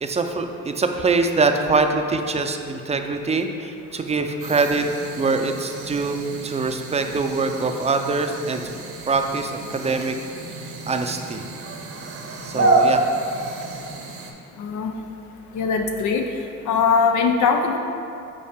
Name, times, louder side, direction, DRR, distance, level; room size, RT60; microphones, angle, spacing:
voice 1, 0.0-4.9 5.1-8.7 9.1-10.1 10.9-11.4 12.4-13.0, right 3 dB, 20° right, 5 dB, 0.5 m, -23 dB
sound 1, 4.4-14.3, right 2 dB, 50° right, 0.8 m, -28 dB
voice 2, 14.6-14.9 15.5-16.3 16.7-17.8, left 5 dB, 75° left, 4 dB, 0.5 m, -21 dB
5.4 x 4.3 x 5.0 m, 2.6 s
cardioid pair, 90°, 30 cm